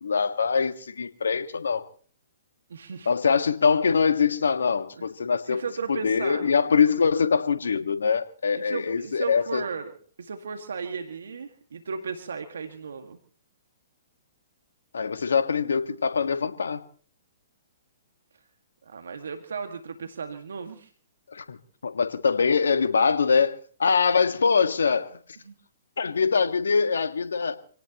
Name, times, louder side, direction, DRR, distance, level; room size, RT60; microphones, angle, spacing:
voice 1, 0.0-1.8 3.0-5.6 5.9-9.6 14.9-16.8 21.3-21.6 21.8-25.2 26.0-27.6, left 5 dB, 80° left, 9 dB, 1.6 m, -23 dB
voice 2, 2.7-3.1 5.5-6.5 8.5-9.9 10.2-13.2 18.9-20.9 25.4-25.6, right 5 dB, 75° right, 6 dB, 1.9 m, -35 dB
27.0 x 18.0 x 3.0 m, 0.44 s
hypercardioid pair, 125°, 0 cm